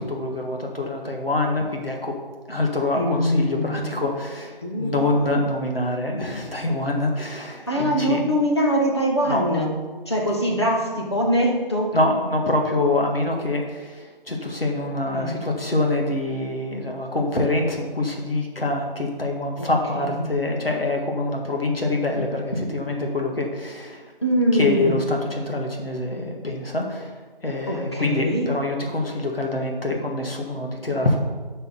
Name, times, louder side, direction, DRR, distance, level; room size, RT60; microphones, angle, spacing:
voice 1, 0.1-2.1 2.5-8.2 9.2-9.4 11.9-24.1 24.5-27.2 27.4-31.2, left 2 dB, 75° left, 1 dB, 1.9 m, -25 dB
voice 2, 2.9-3.9 4.6-4.9 5.2-5.4 7.7-9.7 10.1-11.9 15.1-15.4 19.6-19.7 19.9-20.4 24.2-25.0 27.7-28.5, equal, 30° left, -2 dB, 1.3 m, -23 dB
7.9 x 5.6 x 6.9 m, 1.4 s
figure-of-eight pair, 170°, 29 cm